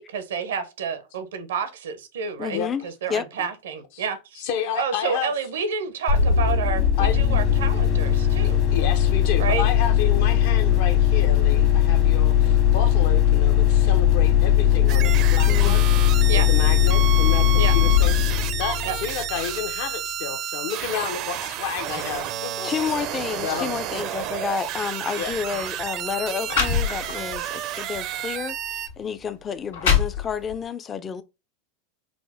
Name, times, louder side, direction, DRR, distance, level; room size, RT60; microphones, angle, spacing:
voice 1, 0.0-4.4 4.7-8.6 9.4-9.7 16.3-16.5 17.6-17.7 18.8-19.0, right 6 dB, 85° right, 0.7 m, -29 dB
voice 2, 2.4-3.5 15.5-15.8 22.6-31.2, left 7 dB, 25° left, 0.4 m, -30 dB
voice 3, 4.4-5.3 7.0-7.2 8.4-22.7 23.4-23.7 25.2-25.3, left 8 dB, 65° left, 0.8 m, -31 dB
sound 1, 6.1-19.6, left 10 dB, 50° left, 1.3 m, -19 dB
sound 2, 14.9-28.9, right 12 dB, 45° right, 0.4 m, -31 dB
sound 3, 25.2-25.4 26.1-26.2 26.5-27.4 27.9-28.1 28.9-29.0 29.5-30.6, left 7 dB, 90° left, 1.6 m, -24 dB
5.0 x 2.0 x 3.5 m
supercardioid pair, 120°, 0 cm